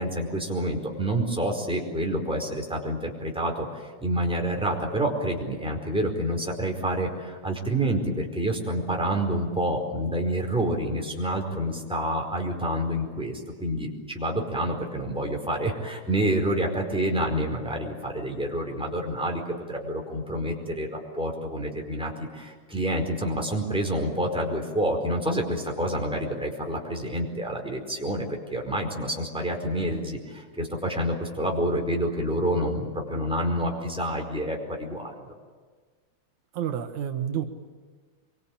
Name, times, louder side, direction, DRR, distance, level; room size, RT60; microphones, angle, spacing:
voice 1, 0.0-19.4 19.7-35.1, right 1 dB, ahead, 0 dB, 4.4 m, -28 dB
voice 2, 36.5-37.5, right 9 dB, 80° right, 5 dB, 2.7 m, -29 dB
25.5 x 23.5 x 8.7 m, 1.5 s
omnidirectional pair, 3.3 m